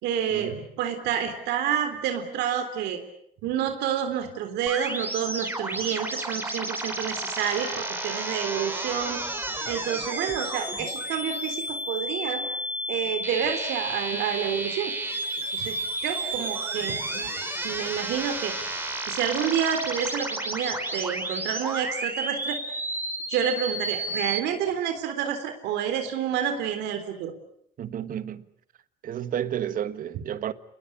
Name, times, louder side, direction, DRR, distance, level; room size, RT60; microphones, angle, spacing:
voice 1, 0.0-3.0 3.4-9.2 9.7-12.4 12.9-14.9 15.5-15.7 16.0-17.3 17.6-18.5 19.1-22.6 23.3-27.3, right 8 dB, 85° right, 3.7 m, -29 dB
sound 1, 4.7-24.4, right 1 dB, 10° right, 4.8 m, -32 dB
voice 2, 27.8-28.4 29.0-30.5, right 10 dB, 55° right, 1.5 m, -31 dB
28.5 x 20.5 x 8.6 m
cardioid pair, 110°, 17 cm